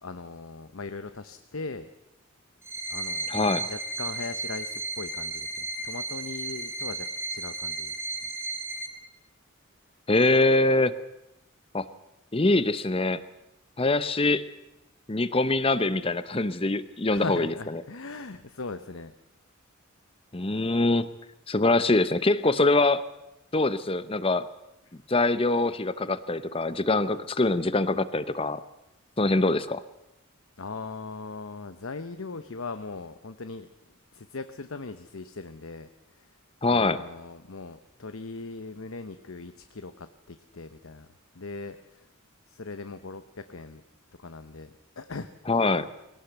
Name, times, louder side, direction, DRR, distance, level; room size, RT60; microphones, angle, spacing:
voice 1, 0.0-1.9 2.9-7.9 17.1-19.1 24.9-25.0 30.6-33.7 34.1-36.3 36.7-41.1 41.3-42.1 42.5-43.8 44.2-45.3 45.6-45.8, left 3 dB, 80° left, 10 dB, 0.9 m, -39 dB
sound 1, 2.6-8.9, right 2 dB, 10° right, 2.0 m, -34 dB
voice 2, 3.3-3.6 10.1-10.9 11.7-11.9 12.3-13.2 13.8-14.5 15.1-17.5 20.3-21.1 21.5-23.0 23.5-24.5 25.1-28.6 29.2-29.8 36.6-37.0 45.5-45.9, left 2 dB, 25° left, 14 dB, 0.8 m, -24 dB
21.0 x 17.5 x 8.1 m, 0.89 s
head